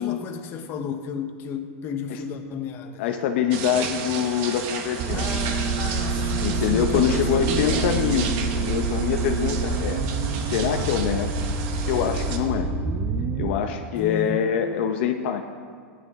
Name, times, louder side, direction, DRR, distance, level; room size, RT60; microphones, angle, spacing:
voice 1, 0.0-3.0 5.1-8.0 14.0-14.5, left 6 dB, 30° left, 5 dB, 0.9 m, -33 dB
voice 2, 3.0-5.2 6.4-10.0 10.4-11.5 11.9-12.7 13.4-15.4, left 8 dB, 55° left, 5 dB, 0.7 m, -25 dB
sound 1, 3.5-12.4, right 5 dB, 45° right, 1.2 m, -33 dB
sound 2, 5.0-13.5, right 3 dB, 30° right, 0.6 m, -27 dB
15.0 x 10.5 x 3.6 m, 2.1 s
supercardioid pair, 155°, 7 cm